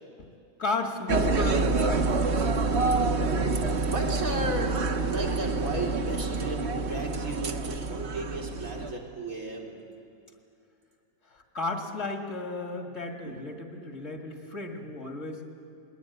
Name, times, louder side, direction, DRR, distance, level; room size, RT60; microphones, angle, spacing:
voice 1, 0.6-2.3 11.2-15.5, left 2 dB, 60° left, 2 dB, 2.3 m, -34 dB
sound 1, 1.1-8.9, right 3 dB, 50° right, 1.4 m, -27 dB
voice 2, 3.9-9.8 13.3-13.4, right 2 dB, 85° right, -1 dB, 3.5 m, -34 dB
21.0 x 20.0 x 9.3 m, 2.7 s
omnidirectional pair, 1.4 m